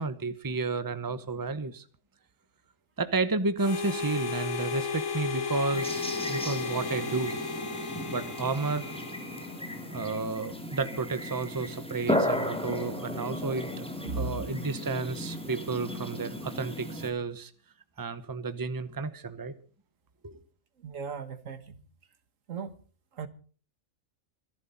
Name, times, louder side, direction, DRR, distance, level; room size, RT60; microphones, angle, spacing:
voice 1, 0.0-1.8 3.0-7.4 8.1-8.9 9.9-13.7 14.1-17.5 18.0-19.5 20.2-20.4, right 3 dB, 20° right, 0.9 m, -32 dB
Harmonica, 3.6-10.0, left 4 dB, 75° left, 1.7 m, -35 dB
sound 1, 5.7-17.1, left 1 dB, 5° left, 2.4 m, -35 dB
sound 2, 6.2-11.5 12.1-17.1, left 3 dB, 45° left, 6.6 m, -55 dB
voice 2, 14.0-14.4 20.8-21.8 22.5-22.8 23.1-23.3, right 4 dB, 80° right, 1.8 m, -36 dB
25.5 x 11.0 x 4.1 m
omnidirectional pair, 1.3 m